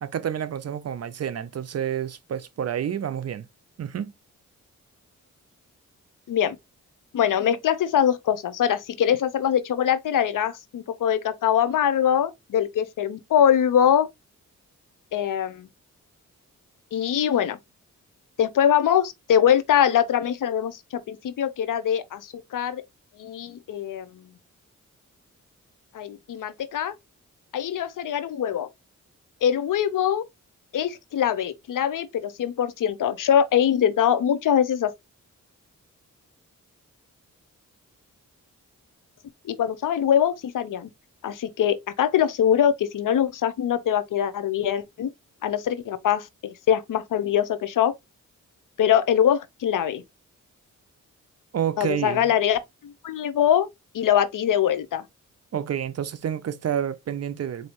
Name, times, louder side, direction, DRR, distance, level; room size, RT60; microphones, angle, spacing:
voice 1, 0.0-3.5 3.8-4.1 51.5-52.3 55.5-57.7, right 9 dB, 50° right, 0.5 m, -29 dB
voice 2, 7.1-14.1 15.1-15.7 16.9-17.6 18.4-22.8 23.2-24.2 25.9-26.9 27.5-28.7 29.4-30.2 30.7-34.9 39.5-40.9 41.2-45.1 45.4-47.9 48.8-50.0 51.8-53.7 53.9-55.0, left 9 dB, 75° left, 0.6 m, -23 dB
4.2 x 2.7 x 2.9 m
cardioid pair, 65°, 32 cm